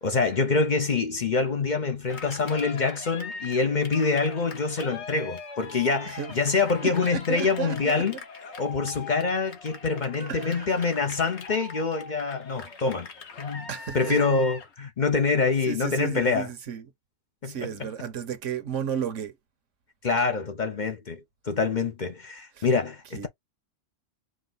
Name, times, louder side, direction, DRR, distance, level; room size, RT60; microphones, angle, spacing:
voice 1, 0.0-8.2 8.6-13.1 13.4-13.7 13.9-16.5 17.4-17.6 20.0-21.2 21.5-23.3, left 4 dB, 45° left, 0.8 m, -25 dB
Cheering, 2.1-14.7, left 4 dB, 65° left, 1.4 m, -41 dB
voice 2, 6.8-8.0 10.2-11.0 13.7-14.3 15.6-16.9 17.4-19.4 22.5-22.7 23.1-23.3, right 7 dB, 75° right, 1.2 m, -34 dB
5.1 x 2.3 x 3.9 m
omnidirectional pair, 1.3 m